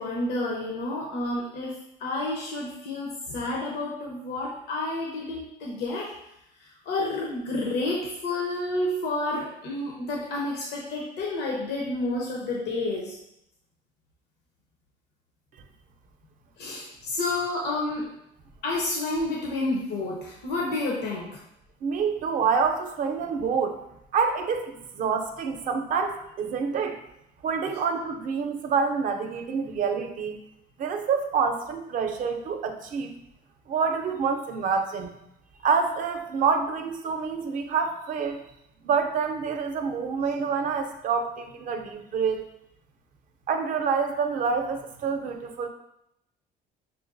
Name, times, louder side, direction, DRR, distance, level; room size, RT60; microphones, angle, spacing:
voice 1, 0.0-6.1 6.6-13.1 16.6-18.1 18.6-21.4, left 2 dB, 85° left, -2 dB, 0.7 m, -30 dB
voice 2, 21.8-23.8 24.1-27.0 27.4-30.4 30.8-33.1 33.7-35.1 35.6-38.4 38.8-42.5 43.5-45.7, right 5 dB, 50° right, 6 dB, 0.5 m, -27 dB
5.8 x 2.3 x 2.5 m, 0.80 s
cardioid pair, 110°, 17 cm